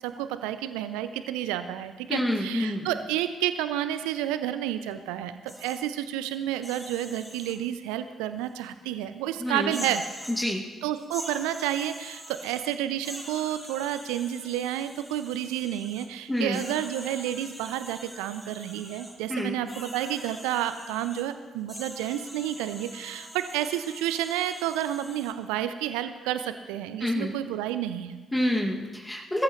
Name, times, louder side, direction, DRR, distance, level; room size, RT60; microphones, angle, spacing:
voice 1, 0.0-10.0 10.8-28.2, right 12 dB, 70° right, 11 dB, 0.6 m, -30 dB
voice 2, 2.1-2.9 9.4-9.8 10.4-10.6 16.3-16.6 19.3-19.6 27.0-27.3 28.3-29.4, left 1 dB, 10° left, -1 dB, 2.3 m, -27 dB
sound 1, 5.5-5.8 6.5-7.6 8.6-8.7 9.6-10.4 11.0-12.8 13.0-16.1 16.5-19.2 19.7-21.2 21.7-25.3, equal, 5° right, 5.2 m, -44 dB
21.0 x 13.5 x 3.2 m, 1.2 s
figure-of-eight pair, 45°, 0 cm